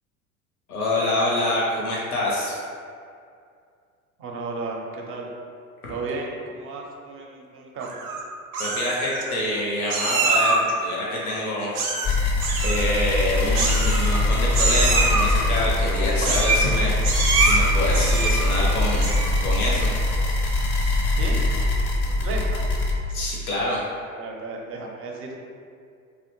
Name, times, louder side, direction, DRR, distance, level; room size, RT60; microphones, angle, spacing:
voice 1, 0.7-2.6 8.6-11.7 12.6-16.9 17.3-19.1 19.4-19.9 23.1-23.8, left 1 dB, 90° left, -4 dB, 0.6 m, -26 dB
voice 2, 4.2-5.3 5.9-7.9 21.2-21.4 22.1-22.6 24.2-25.4, right 3 dB, 30° right, 0 dB, 0.5 m, -34 dB
Meow, 7.8-8.2 8.5-9.2 9.9-10.7 11.7-12.1 12.4-12.8 13.6-14.3 14.5-15.3 16.2-16.7 17.0-17.6 17.9-18.5 18.9-19.4, right 3 dB, 85° right, 0.5 m, -24 dB
sound 1, 12.0-22.9, left 2 dB, 30° left, 0.4 m, -22 dB
2.7 x 2.0 x 2.9 m, 2.3 s
figure-of-eight pair, 70°, 43 cm